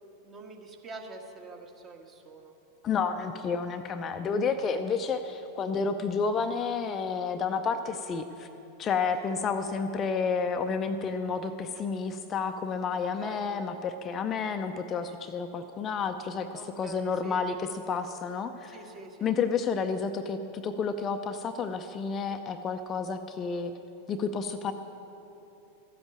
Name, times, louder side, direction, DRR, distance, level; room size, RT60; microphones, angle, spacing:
voice 1, 0.0-2.5 9.0-9.3 12.9-13.4 16.5-17.4 18.7-19.3, right 3 dB, 25° right, 2 dB, 1.4 m, -46 dB
voice 2, 2.8-8.5 8.8-16.5 16.8-18.8 19.2-23.7 24.1-24.7, left 5 dB, 25° left, 7 dB, 0.6 m, -30 dB
14.0 x 7.9 x 8.9 m, 3.0 s
figure-of-eight pair, 90°, 0 cm